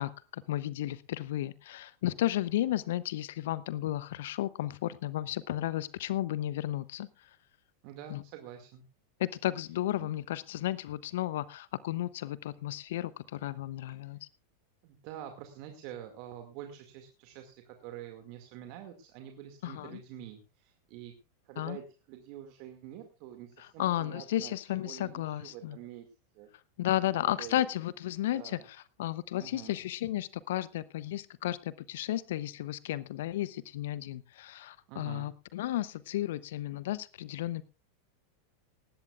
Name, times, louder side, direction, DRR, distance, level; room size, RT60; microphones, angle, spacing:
voice 1, 0.0-7.1 8.1-8.2 9.2-14.2 19.6-20.0 21.6-21.8 23.8-25.8 26.8-28.6 29.0-37.6, left 14 dB, 65° left, 18 dB, 0.7 m, -33 dB
voice 2, 7.8-8.8 10.0-10.1 14.0-14.2 14.8-21.1 21.4-26.1 26.3-26.5 27.0-27.7 28.2-28.7 29.4-29.8 34.9-35.3, right 11 dB, 50° right, 5 dB, 2.1 m, -47 dB
19.0 x 16.0 x 2.4 m, 0.29 s
hypercardioid pair, 90°, 0 cm